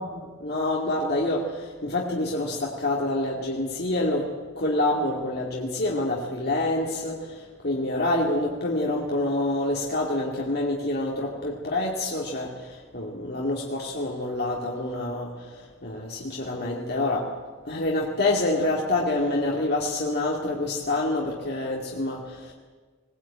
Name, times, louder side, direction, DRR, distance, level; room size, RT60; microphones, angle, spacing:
voice 1, 0.0-17.3 17.6-22.5, left 2 dB, 45° left, -2 dB, 2.5 m, -27 dB
21.0 x 19.0 x 8.8 m, 1.5 s
head